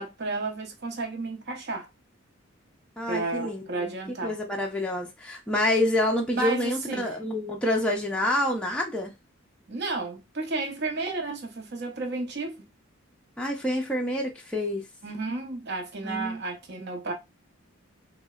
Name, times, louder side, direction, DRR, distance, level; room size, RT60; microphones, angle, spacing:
voice 1, 0.0-1.9 3.1-4.4 6.3-7.1 9.7-12.6 15.0-17.1, right 3 dB, 50° right, 0.7 m, -32 dB
voice 2, 3.0-3.9 4.2-9.1 13.4-14.8 16.0-16.4, left 1 dB, 5° left, 0.4 m, -27 dB
3.8 x 2.1 x 2.3 m
head